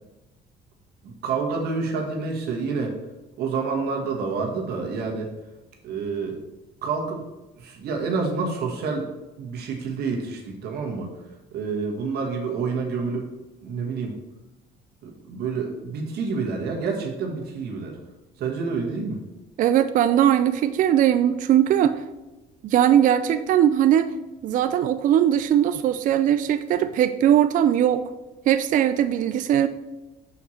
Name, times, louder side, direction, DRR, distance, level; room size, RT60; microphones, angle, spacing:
voice 1, 1.0-3.0 3.4-5.3 5.8-6.4 6.8-7.3 7.6-9.1 9.4-11.1 11.5-13.3 13.6-14.1 15.0-18.0 18.4-19.2, right 4 dB, 70° right, 1 dB, 1.5 m, -28 dB
voice 2, 19.6-22.1 22.6-24.1 24.4-28.0 28.5-29.7, right 10 dB, 50° right, 11 dB, 0.4 m, -20 dB
5.7 x 4.3 x 6.3 m, 1.1 s
cardioid pair, 110°, 17 cm